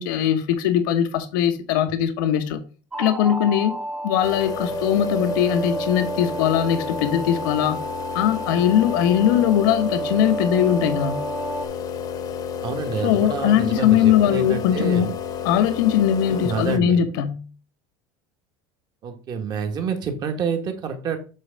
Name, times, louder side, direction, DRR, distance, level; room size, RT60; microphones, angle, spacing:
voice 1, 0.0-2.6 3.0-3.8 4.0-7.8 8.1-11.2 13.0-15.1 15.4-17.4, left 10 dB, 85° left, 1.0 m, -20 dB
sound 1, 2.9-11.7, right 2 dB, 10° right, 0.7 m, -30 dB
sound 2, 4.2-16.8, left 8 dB, 35° left, 0.9 m, -32 dB
voice 2, 12.6-15.1 16.3-17.0 19.0-21.2, right 6 dB, 40° right, 1.4 m, -28 dB
7.7 x 3.3 x 5.1 m
supercardioid pair, 135°, 11 cm